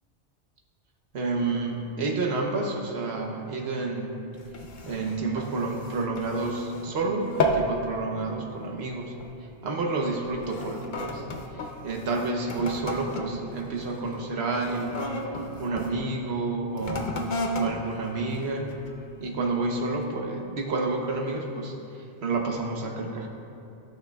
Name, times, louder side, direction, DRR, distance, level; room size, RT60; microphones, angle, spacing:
voice 1, 1.1-4.1 4.8-9.2 9.6-11.2 11.5-17.1 17.6-18.7 19.2-23.3, right 3 dB, 65° right, 1 dB, 1.2 m, -30 dB
sound 1, 4.3-6.9 7.2-7.8 8.1-8.5 9.1-9.4 10.1-15.9 16.7-19.1 19.6-19.7, left 1 dB, 50° left, 0.7 m, -33 dB
14.5 x 6.5 x 2.3 m, 2.7 s
omnidirectional pair, 1.2 m